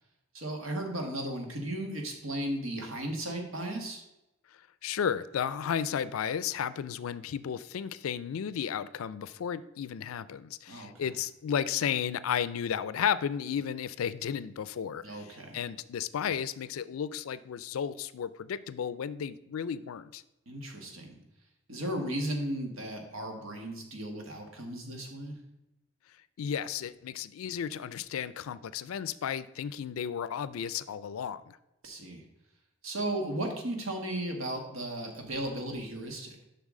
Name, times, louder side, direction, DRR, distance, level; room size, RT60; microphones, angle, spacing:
voice 1, 0.3-4.0 10.7-11.1 15.0-15.6 20.5-21.2 21.7-25.4 31.8-32.2 32.8-36.4, right 1 dB, 80° right, 3 dB, 1.5 m, -35 dB
voice 2, 4.8-20.2 26.4-31.6, left 8 dB, 85° left, 16 dB, 0.4 m, -33 dB
7.2 x 5.7 x 3.7 m, 0.91 s
head